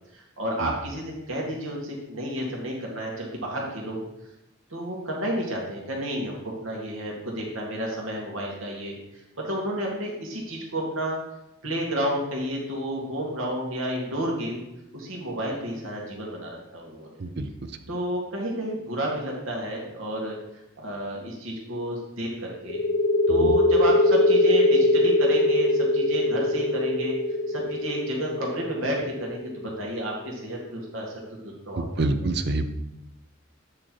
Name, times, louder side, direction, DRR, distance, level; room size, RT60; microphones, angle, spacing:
voice 1, 0.1-4.0 4.7-8.9 9.4-11.2 11.6-14.6 14.9-17.2 17.9-20.3 20.8-22.8 23.3-27.2 27.5-31.1 31.4-31.8, right 1 dB, 80° right, -2 dB, 2.1 m, -31 dB
voice 2, 17.2-17.8 23.3-23.5 31.8-32.7, right 2 dB, 55° right, 10 dB, 0.6 m, -27 dB
sound 1, 22.7-30.1, left 2 dB, 75° left, 0.7 m, -22 dB
8.7 x 4.4 x 4.6 m, 0.88 s
head